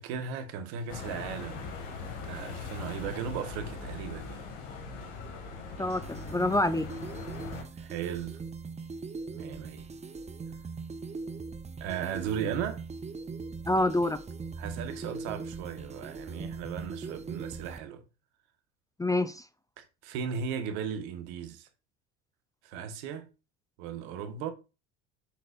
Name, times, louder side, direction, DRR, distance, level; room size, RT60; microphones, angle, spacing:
voice 1, 0.0-1.6 2.2-4.5 7.8-8.4 9.3-9.8 11.8-12.8 14.6-18.0 19.8-21.7 22.6-23.3 23.8-24.5, right 7 dB, 70° right, 1.6 m, -36 dB
sound 1, 0.9-7.6, left 4 dB, 70° left, 2.3 m, -41 dB
voice 2, 5.8-6.9 13.7-14.2 19.0-19.4, left 2 dB, 10° left, 0.6 m, -27 dB
sound 2, 5.8-17.8, right 4 dB, 20° right, 0.8 m, -40 dB
7.9 x 6.4 x 2.6 m
hypercardioid pair, 70°, 36 cm